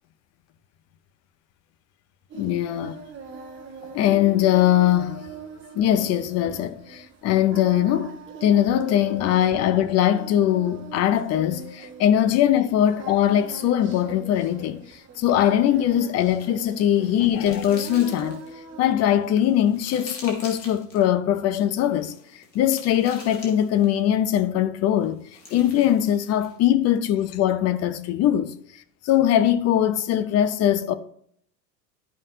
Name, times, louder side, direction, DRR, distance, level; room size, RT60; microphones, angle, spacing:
voice 1, 2.3-3.0 3.9-5.3 5.7-14.8 15.2-18.4 18.8-25.2 25.5-28.5 29.0-30.9, left 11 dB, 30° left, 0.7 m, -21 dB
Singing, 2.3-18.9, right 5 dB, 25° right, 1.5 m, -41 dB
sound 1, 16.2-18.5 19.1-21.0 21.9-24.1 25.0-26.6, left 2 dB, 85° left, 2.7 m, -45 dB
13.5 x 5.3 x 2.8 m
hypercardioid pair, 110°, 50 cm